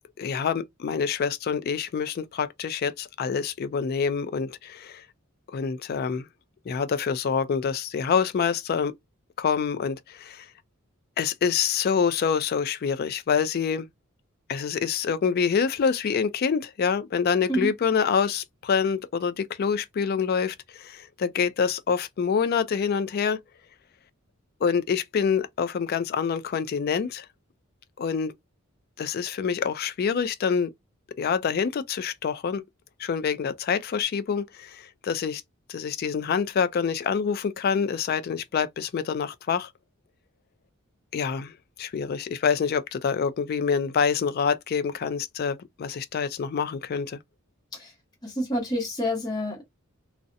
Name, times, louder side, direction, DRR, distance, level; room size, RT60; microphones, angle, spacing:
voice 1, 0.2-5.0 5.5-6.3 6.7-8.9 9.4-10.5 11.2-13.9 14.5-23.4 24.6-27.3 28.0-28.3 29.0-30.7 31.2-32.6 33.0-35.4 35.7-39.7 41.1-47.2, left 6 dB, 45° left, 0.3 m, -26 dB
voice 2, 48.2-49.6, equal, 20° left, 0.9 m, -28 dB
2.6 x 2.0 x 2.5 m
head